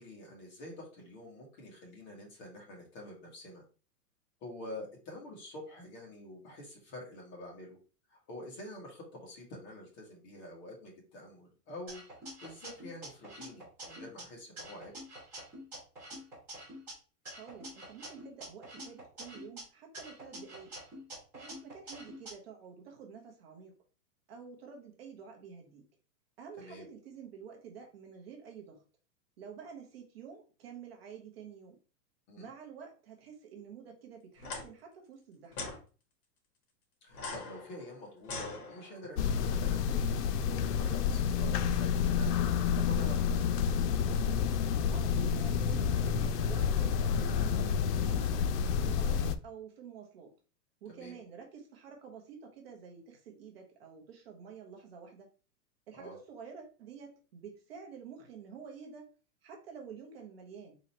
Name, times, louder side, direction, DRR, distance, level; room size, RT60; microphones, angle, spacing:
voice 1, 0.0-3.6 4.4-7.8 8.1-12.0 12.4-14.9 26.6-26.9 32.3-32.5 37.0-40.1 40.5-43.5 50.9-51.2 55.9-56.2, left 1 dB, 30° left, -2 dB, 1.4 m, -47 dB
sound 1, 11.9-14.2 14.6-16.9 17.3-19.6 19.9-22.3, right 1 dB, 5° right, 0.4 m, -47 dB
voice 2, 17.3-20.7 21.3-23.7 24.3-25.8 26.4-28.8 29.4-31.8 32.4-35.7 44.9-48.4 48.8-50.3 50.8-55.3 55.9-59.1 59.4-60.8, right 6 dB, 40° right, 1 dB, 0.8 m, -49 dB
sound 2, 34.4-34.6 35.5-35.8 37.1-39.1, left 3 dB, 65° left, 1.6 m, -42 dB
sound 3, 39.2-49.4, left 7 dB, 80° left, 0.6 m, -29 dB
3.9 x 2.8 x 4.2 m, 0.36 s
supercardioid pair, 170°, 47 cm